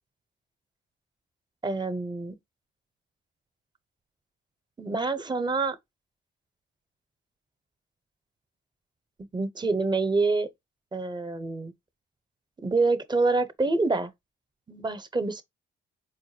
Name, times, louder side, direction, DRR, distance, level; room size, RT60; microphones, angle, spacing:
voice 1, 1.6-2.4 4.8-5.8 9.3-10.5 10.9-11.7 12.6-14.1 14.7-15.4, right 3 dB, 20° right, 0.7 m, -26 dB
4.4 x 2.1 x 3.2 m
cardioid pair, 90°, 20 cm